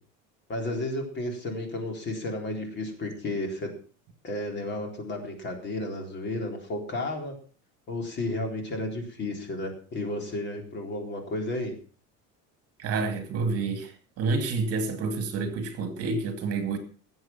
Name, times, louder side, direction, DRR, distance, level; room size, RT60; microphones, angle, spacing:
voice 1, 0.5-3.7 4.2-7.4 7.9-11.7, left 1 dB, 35° left, 3 dB, 4.0 m, -32 dB
voice 2, 12.8-13.9 14.2-16.8, right 4 dB, 45° right, 7 dB, 2.5 m, -28 dB
18.0 x 8.0 x 5.9 m, 0.41 s
cardioid pair, 155°, 32 cm